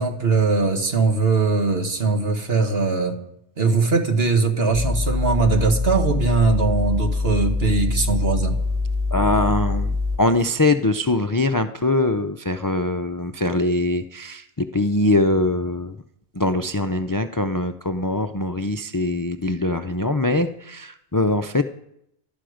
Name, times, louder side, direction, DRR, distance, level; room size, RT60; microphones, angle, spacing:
voice 1, 0.0-3.2 3.6-8.6, right 4 dB, 65° right, 5 dB, 1.9 m, -20 dB
sound 1, 4.7-10.2, left 3 dB, 40° right, 2.3 m, -24 dB
voice 2, 9.1-16.0 16.3-21.6, left 2 dB, 30° left, 9 dB, 0.4 m, -22 dB
19.0 x 12.0 x 5.1 m, 0.79 s
omnidirectional pair, 1.1 m